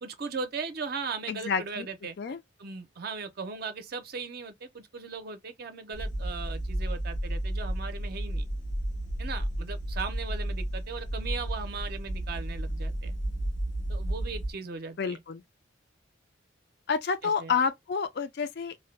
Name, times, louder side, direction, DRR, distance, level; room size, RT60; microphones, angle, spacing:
voice 1, 0.0-2.2 2.6-8.5 9.2-13.2 13.9-15.2 17.2-17.5, right 5 dB, 50° right, 0.5 m, -38 dB
voice 2, 1.3-1.9 2.2-2.4 15.0-15.4 16.9-18.9, left 6 dB, 55° left, 0.4 m, -29 dB
sound 1, 5.9-14.5, right 1 dB, 85° left, 1.1 m, -32 dB
2.6 x 2.1 x 3.1 m
head